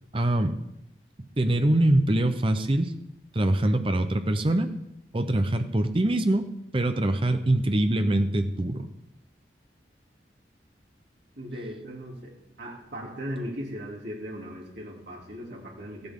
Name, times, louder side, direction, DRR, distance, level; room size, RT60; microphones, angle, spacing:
voice 1, 0.1-0.5 1.2-2.9 3.3-4.7 5.1-6.5 6.7-8.9, right 1 dB, 30° right, 8 dB, 0.7 m, -24 dB
voice 2, 11.3-16.1, equal, 85° right, -3 dB, 3.0 m, -38 dB
16.0 x 10.5 x 3.7 m, 0.85 s
head